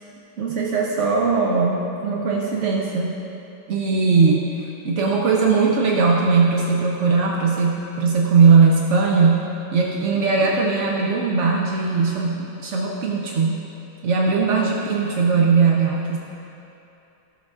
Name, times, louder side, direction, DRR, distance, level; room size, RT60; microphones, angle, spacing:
voice 1, 0.4-3.2 3.7-9.5 9.7-13.6 14.0-16.2, right 4 dB, 70° right, -2 dB, 0.7 m, -19 dB
15.0 x 6.4 x 2.4 m, 2.8 s
omnidirectional pair, 2.1 m